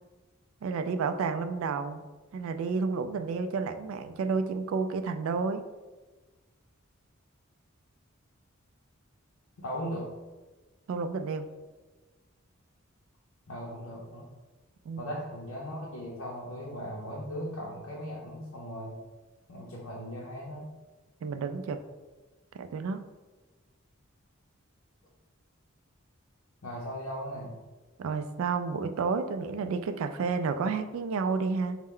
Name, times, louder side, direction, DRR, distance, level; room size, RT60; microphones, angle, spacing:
voice 1, 0.6-2.0 2.3-5.6 10.9-11.5 14.9-15.0 21.2-21.8 22.5-23.0 28.0-31.8, right 4 dB, 75° right, 9 dB, 0.3 m, -31 dB
voice 2, 9.6-10.1 13.5-14.3 15.0-19.0 19.5-20.7 26.6-27.6, equal, 80° left, -3 dB, 0.6 m, -38 dB
4.2 x 2.1 x 3.6 m, 1.2 s
head